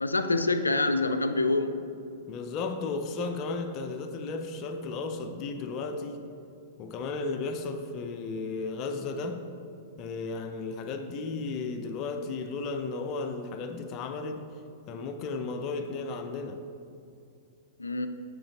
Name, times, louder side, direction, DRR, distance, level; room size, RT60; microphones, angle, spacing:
voice 1, 0.0-1.7 17.8-18.1, left 2 dB, 85° left, 9 dB, 0.4 m, -26 dB
voice 2, 2.3-6.2 6.8-9.5 10.0-14.5 14.9-16.6, left 3 dB, 35° left, 7 dB, 0.5 m, -34 dB
7.8 x 6.0 x 3.8 m, 2.6 s
figure-of-eight pair, 100°, 0 cm